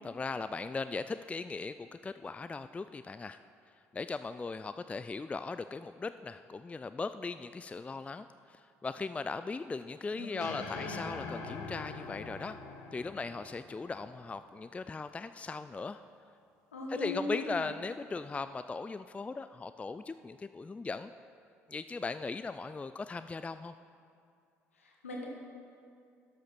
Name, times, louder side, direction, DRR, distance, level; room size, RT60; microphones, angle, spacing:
voice 1, 0.0-3.4 3.9-12.6 12.9-16.0 16.9-21.1 21.7-23.7, left 4 dB, 20° left, 12 dB, 0.3 m, -38 dB
voice 2, 10.1-11.0 16.7-17.7 24.7-25.3, left 2 dB, 85° left, -1 dB, 1.2 m, -40 dB
sound 1, 10.4-14.8, left 4 dB, 60° left, 1.3 m, -44 dB
12.5 x 6.7 x 6.1 m, 2.4 s
figure-of-eight pair, 50°, 7 cm